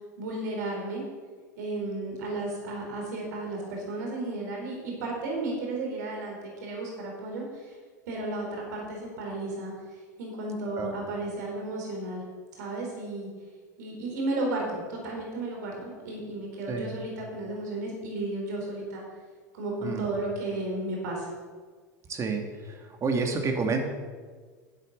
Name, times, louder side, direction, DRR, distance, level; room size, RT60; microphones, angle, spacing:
voice 1, 0.2-1.0 1.6-7.7 8.1-12.2 12.5-13.3 13.8-19.0 19.5-21.3, right 2 dB, 75° right, -1 dB, 4.3 m, -33 dB
voice 2, 22.1-23.8, right 4 dB, 30° right, 3 dB, 2.4 m, -29 dB
11.5 x 8.2 x 6.7 m, 1.5 s
hypercardioid pair, 90°, 10 cm